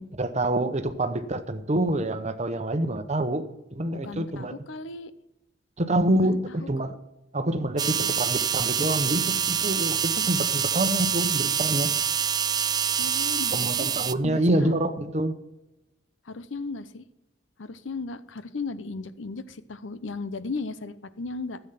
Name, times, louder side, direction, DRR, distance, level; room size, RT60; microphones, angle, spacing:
voice 1, 0.0-3.4 3.7-4.5 5.8-6.9 7.3-11.9 13.5-15.3, right 1 dB, 40° right, 9 dB, 1.0 m, -26 dB
voice 2, 3.9-5.1 6.2-7.0 7.9-8.1 13.0-13.9 14.2-14.8 16.2-17.0 17.6-21.6, left 3 dB, 90° left, 14 dB, 0.8 m, -36 dB
sound 1, 7.8-14.1, right 8 dB, 20° right, 0.3 m, -26 dB
13.5 x 8.2 x 5.8 m, 0.94 s
head